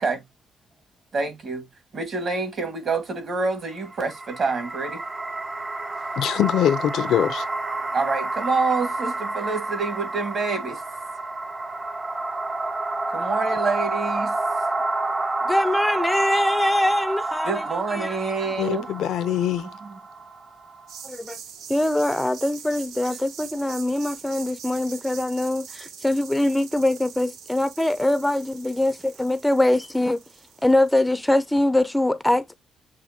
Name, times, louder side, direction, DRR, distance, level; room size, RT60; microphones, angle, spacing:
voice 1, 1.1-1.6 1.9-5.0 7.9-10.8 13.1-14.4 17.4-18.9 19.8-19.9, right 4 dB, 50° right, 1.6 m, -27 dB
sound 1, 3.7-20.9, right 2 dB, 25° right, 0.7 m, -29 dB
voice 2, 6.2-7.5 18.6-19.6, left 10 dB, 80° left, 0.5 m, -23 dB
voice 3, 15.4-18.2 21.0-21.4 21.7-30.2 30.6-32.5, left 1 dB, 5° left, 0.4 m, -23 dB
sound 2, 20.9-31.4, right 7 dB, 80° right, 0.6 m, -43 dB
7.3 x 2.5 x 2.7 m
cardioid pair, 90°, 0 cm